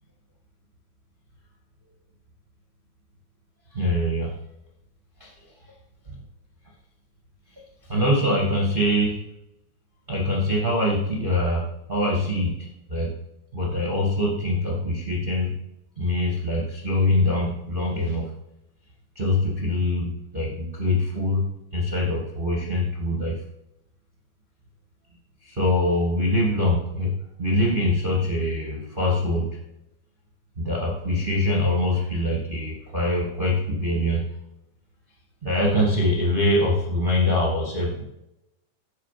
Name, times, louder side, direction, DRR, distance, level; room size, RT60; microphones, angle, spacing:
voice 1, 3.7-4.4 5.2-5.3 6.0-6.2 7.9-9.1 10.1-13.1 13.5-15.5 15.9-18.3 19.1-21.5 21.7-23.4 25.4-29.5 30.5-34.3 35.4-38.0, left 1 dB, 30° right, -3 dB, 0.9 m, -24 dB
12.0 x 4.2 x 5.9 m, 0.85 s
omnidirectional pair, 5.0 m